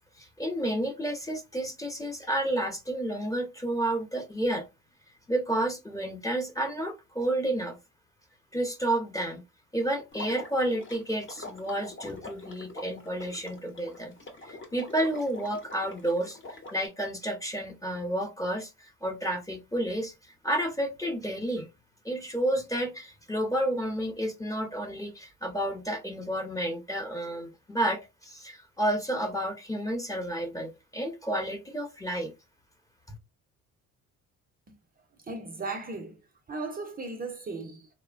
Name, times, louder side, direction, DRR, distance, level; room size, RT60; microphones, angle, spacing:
voice 1, 0.2-4.6 5.3-7.8 8.5-9.4 9.7-14.1 14.4-16.4 16.7-18.7 19.0-20.1 20.4-21.7 22.0-32.3, right 1 dB, 10° left, 0.7 m, -30 dB
Water / Liquid, 10.1-16.9, left 2 dB, 40° left, 1.0 m, -45 dB
voice 2, 35.2-36.2 36.5-37.9, right 3 dB, 30° right, 0.6 m, -36 dB
3.1 x 2.1 x 2.4 m
supercardioid pair, 80°, 32 cm